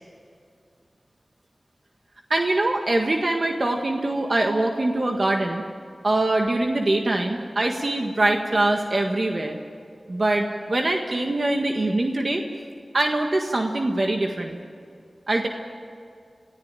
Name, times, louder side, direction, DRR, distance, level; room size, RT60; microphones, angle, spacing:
voice 1, 2.3-5.6 6.0-9.6 10.1-12.4 12.9-14.6 15.3-15.5, right 2 dB, 60° right, 3 dB, 1.7 m, -23 dB
25.5 x 15.5 x 9.1 m, 2.3 s
cardioid pair, 40°, 0 cm